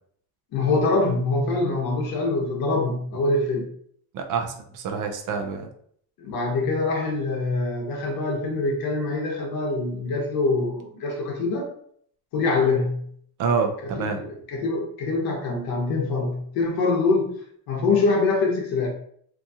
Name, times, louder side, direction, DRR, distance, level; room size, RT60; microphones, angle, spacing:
voice 1, 0.5-3.7 6.2-11.7 12.3-13.1 13.8-17.3 17.7-18.9, left 3 dB, 65° left, 1 dB, 0.9 m, -24 dB
voice 2, 4.1-5.7 13.4-14.2, right 5 dB, 55° right, 4 dB, 0.5 m, -27 dB
2.8 x 2.3 x 2.7 m, 0.62 s
cardioid pair, 135°, 39 cm